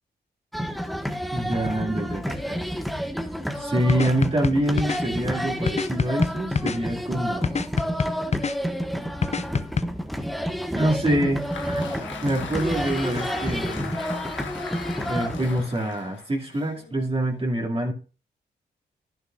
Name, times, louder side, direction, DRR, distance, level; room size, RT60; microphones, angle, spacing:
sound 1, 0.5-15.6, equal, ahead, 1.6 m, -30 dB
voice 1, 1.3-2.6 3.6-7.6 10.8-11.9 12.2-13.9 15.1-17.9, right 1 dB, 30° right, -2 dB, 2.6 m, -26 dB
sound 2, 3.9-5.0 5.7-6.8 7.4-8.5 9.2-9.8, left 5 dB, 35° left, 0.6 m, -25 dB
Applause, 11.1-17.4, left 6 dB, 75° left, 1.5 m, -38 dB
11.5 x 9.8 x 2.5 m, 0.36 s
supercardioid pair, 40°, 19 cm